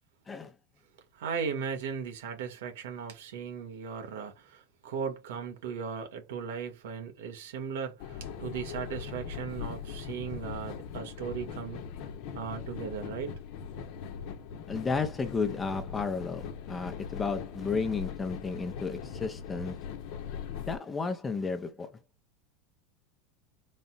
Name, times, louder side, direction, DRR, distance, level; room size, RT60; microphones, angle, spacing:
voice 1, 1.1-11.8 12.3-13.3, right 6 dB, 90° right, 1.6 m, -37 dB
sound 1, 8.0-20.8, left 7 dB, 55° left, 0.9 m, -40 dB
voice 2, 14.7-19.8 20.7-21.9, left 4 dB, 15° left, 0.7 m, -33 dB
4.1 x 2.3 x 4.0 m
supercardioid pair, 150°, 0 cm